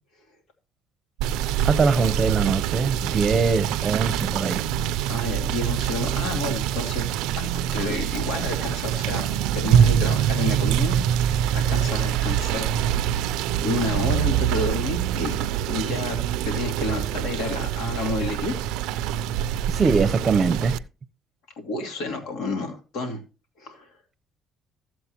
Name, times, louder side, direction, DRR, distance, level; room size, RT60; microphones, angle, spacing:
Rain / Motor vehicle (road), 1.2-20.8, right 10 dB, 90° right, 0.5 m, -25 dB
voice 1, 1.6-4.7 19.6-20.8, right 5 dB, 30° right, 0.8 m, -22 dB
voice 2, 4.8-7.1 7.4-12.8 13.5-16.2 16.4-18.5 18.9-19.3 21.6-23.2 23.6-23.9, left 2 dB, 80° left, 2.6 m, -30 dB
14.0 x 7.7 x 3.0 m
cardioid pair, 105°, 0 cm